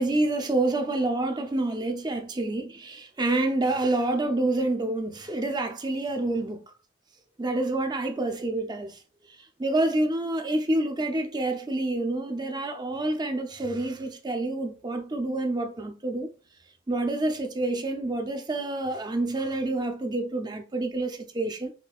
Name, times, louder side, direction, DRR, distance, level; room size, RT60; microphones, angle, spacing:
voice 1, 0.0-6.6 7.4-8.9 9.6-16.3 16.9-21.7, right 2 dB, 20° right, 0.6 m, -28 dB
5.8 x 2.7 x 2.3 m
head